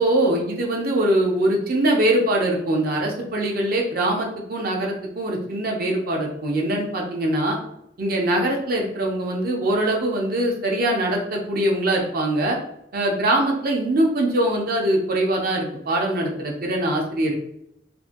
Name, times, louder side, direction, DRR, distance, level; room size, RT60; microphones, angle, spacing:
voice 1, 0.0-7.6 8.0-12.6 12.9-17.4, right 1 dB, 55° right, 0 dB, 0.6 m, -22 dB
2.6 x 2.5 x 2.5 m, 0.78 s
head